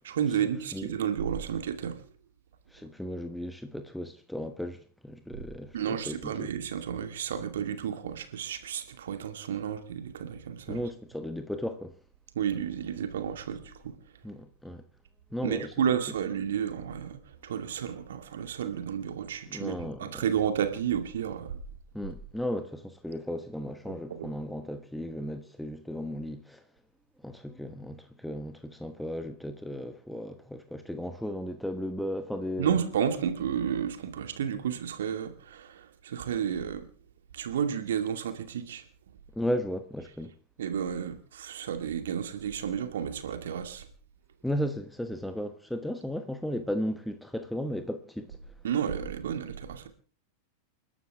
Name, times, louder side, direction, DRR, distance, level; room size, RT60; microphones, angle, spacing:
voice 1, 0.0-2.0 5.7-10.8 12.4-14.0 15.4-17.2 17.4-21.5 24.1-24.3 32.6-36.9 37.3-38.8 40.6-43.9 48.6-49.9, right 8 dB, 60° right, 2.4 m, -31 dB
voice 2, 2.7-6.5 10.7-11.9 14.2-14.8 15.3-15.7 19.5-20.2 21.9-26.6 27.2-32.8 39.3-40.3 44.4-48.5, equal, ahead, 1.2 m, -35 dB
29.5 x 12.0 x 3.6 m
figure-of-eight pair, 90°, 0 cm